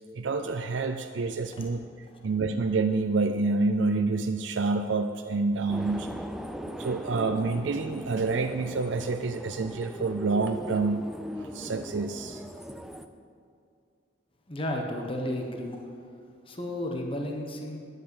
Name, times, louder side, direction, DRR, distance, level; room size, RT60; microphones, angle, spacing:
voice 1, 0.0-1.9 2.2-6.1 6.8-11.1 11.4-12.4, right 3 dB, 70° right, 7 dB, 0.5 m, -28 dB
sound 1, 5.7-13.1, equal, ahead, 0.5 m, -39 dB
voice 2, 14.5-15.8 16.4-17.8, left 1 dB, 30° left, 2 dB, 1.3 m, -33 dB
11.0 x 8.8 x 7.9 m, 2.3 s
head